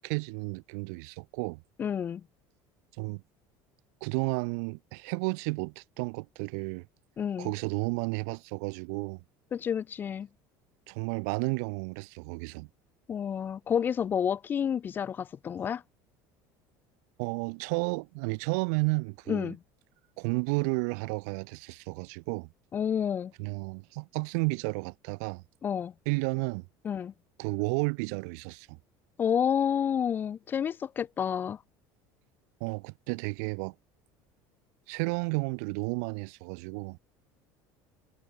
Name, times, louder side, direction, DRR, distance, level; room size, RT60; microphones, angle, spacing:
voice 1, 0.0-1.6 3.0-3.2 4.0-6.9 7.4-9.2 10.9-12.7 17.2-19.5 20.2-22.5 23.4-25.4 26.1-26.7 27.4-28.8 32.6-33.7 34.9-37.0, right 33 dB, 75° right, 7.0 m, -32 dB
voice 2, 1.8-2.2 7.2-7.5 9.5-10.3 13.1-15.8 19.3-19.6 22.7-23.3 25.6-25.9 26.8-27.1 29.2-31.6, left 8 dB, 25° left, 1.3 m, -29 dB
cardioid pair, 180°, 9 cm